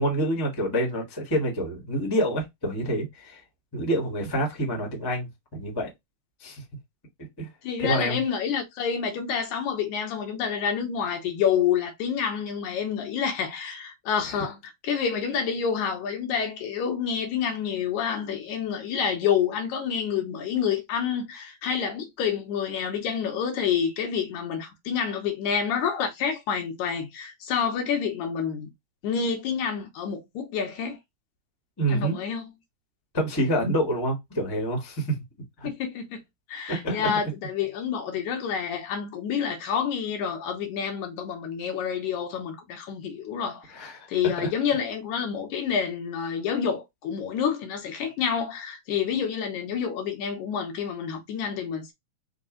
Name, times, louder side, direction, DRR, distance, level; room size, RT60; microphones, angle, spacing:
voice 1, 0.0-3.4 3.7-5.9 6.4-6.6 7.4-7.5 7.8-8.2 14.2-14.4 31.8-32.2 33.1-35.2 35.6-35.7 36.7-37.2 43.7-44.5, right 1 dB, 20° left, 0.7 m, -27 dB
voice 2, 7.6-28.7 29.0-31.0 31.9-32.5 35.6-36.2 36.5-43.7 44.1-51.9, left 7 dB, 80° left, 2.3 m, -28 dB
5.2 x 2.1 x 3.7 m
omnidirectional pair, 3.4 m